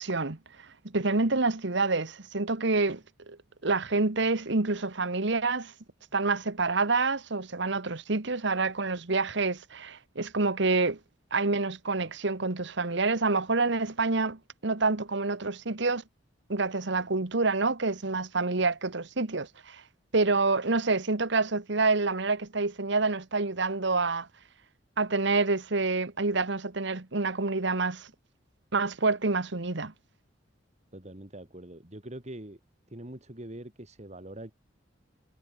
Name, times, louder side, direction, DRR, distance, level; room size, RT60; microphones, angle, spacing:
voice 1, 0.0-3.4 3.6-5.7 6.1-11.0 11.3-16.0 16.5-19.8 20.1-24.3 25.0-28.1 28.7-29.9, right 3 dB, 70° right, 1.5 m, -27 dB
voice 2, 30.9-32.6 32.9-34.5, right 1 dB, 40° right, 2.8 m, -43 dB
head